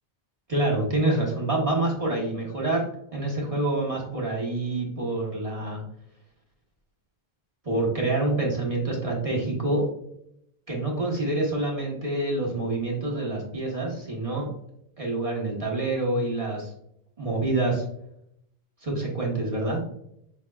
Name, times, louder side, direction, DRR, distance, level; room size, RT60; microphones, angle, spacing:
voice 1, 0.5-2.8 3.1-5.8 7.6-9.8 10.7-14.5 15.0-16.7 17.2-17.8 18.8-19.8, right 2 dB, 35° right, -2 dB, 1.1 m, -27 dB
5.4 x 3.4 x 2.3 m, 0.75 s
omnidirectional pair, 1.1 m